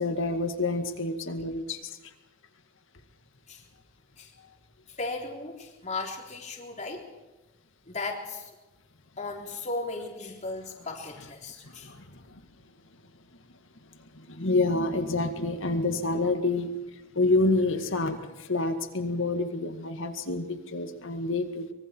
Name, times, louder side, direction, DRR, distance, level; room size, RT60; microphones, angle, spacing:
voice 1, 0.0-2.1 11.6-12.4 14.0-21.7, left 2 dB, 65° left, 7 dB, 2.1 m, -28 dB
voice 2, 4.9-7.1 7.9-8.5 9.2-11.9, left 3 dB, 35° left, 1 dB, 3.7 m, -36 dB
24.5 x 23.0 x 4.7 m, 1.1 s
head